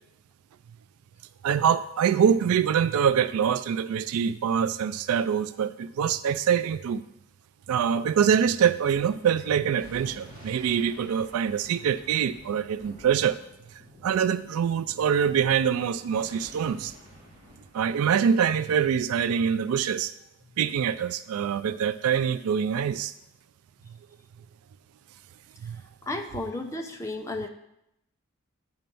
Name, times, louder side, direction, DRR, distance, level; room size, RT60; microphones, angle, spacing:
voice 1, 1.4-7.0 7.7-13.4 14.0-16.9 17.7-20.1 20.6-23.1 25.6-25.8, right 8 dB, 85° right, 14 dB, 0.3 m, -24 dB
Thunder, 8.8-19.7, left 1 dB, 20° right, 2.3 m, -51 dB
voice 2, 26.0-27.5, left 2 dB, 15° left, 3 dB, 0.6 m, -33 dB
9.2 x 4.4 x 5.3 m, 0.84 s
head